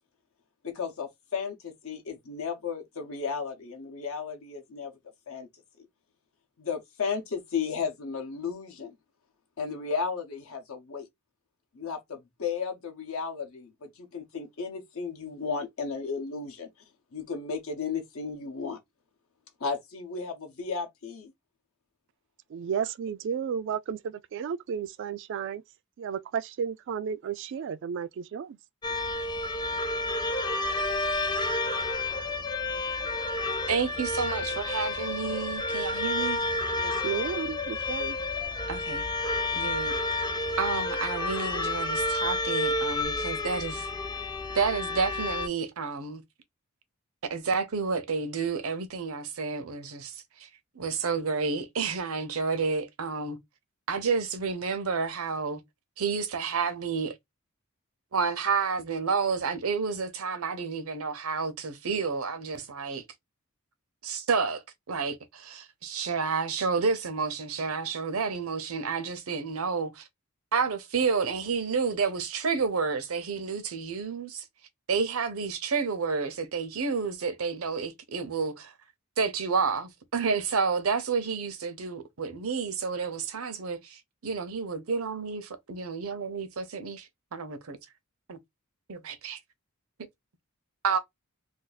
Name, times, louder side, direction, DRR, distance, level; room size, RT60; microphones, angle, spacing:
voice 1, 0.6-4.9 5.3-5.5 6.6-8.9 9.6-11.1 11.8-16.7 17.1-18.8 19.6-21.3, left 5 dB, 70° left, 0.7 m, -34 dB
voice 2, 22.5-25.6 26.0-28.6 36.8-38.2, right 7 dB, 60° right, 0.3 m, -33 dB
sound 1, 28.8-45.5, left 2 dB, 20° left, 0.4 m, -30 dB
voice 3, 33.7-36.4 38.7-39.0 39.5-40.0 40.6-43.9 44.5-46.2 47.2-50.5 50.7-53.4 53.9-55.6 56.0-57.1 58.1-63.0 64.0-70.1 70.5-74.4 74.9-78.7 79.2-87.8 88.3-88.4 88.9-89.4 90.8-91.0, right 5 dB, 75° right, 0.7 m, -30 dB
2.6 x 2.4 x 3.9 m
head